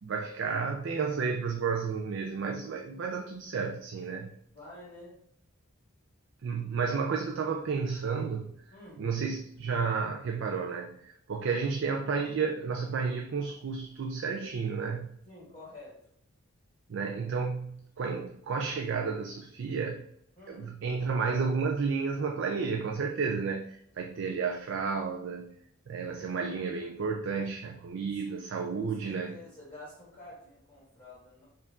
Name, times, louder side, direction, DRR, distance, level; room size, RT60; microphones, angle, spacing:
voice 1, 0.0-4.3 6.4-8.5 9.0-15.1 16.9-20.1 20.5-25.5 25.9-29.4, right 5 dB, 60° right, 2 dB, 0.4 m, -32 dB
voice 2, 4.5-5.2 8.7-9.0 15.2-16.0 20.3-20.7 28.1-31.5, left 2 dB, 20° left, -10 dB, 1.5 m, -50 dB
4.5 x 2.5 x 3.6 m, 0.71 s
head